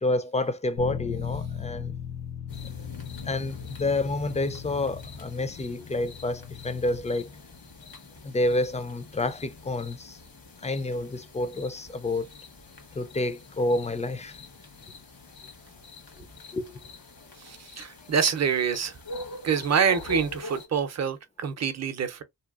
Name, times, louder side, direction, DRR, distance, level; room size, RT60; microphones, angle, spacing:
voice 1, 0.0-2.0 3.2-7.3 8.2-10.2 10.6-12.3 12.9-14.4 16.5-16.8, left 2 dB, 20° left, 0.3 m, -29 dB
Bass guitar, 0.8-7.0, left 9 dB, 65° left, 0.6 m, -38 dB
sound 1, 2.5-20.7, left 2 dB, 90° left, 1.2 m, -44 dB
voice 2, 17.4-19.0 19.4-22.2, right 7 dB, 50° right, 0.6 m, -26 dB
3.2 x 2.8 x 2.3 m
wide cardioid pair, 155°, 34 cm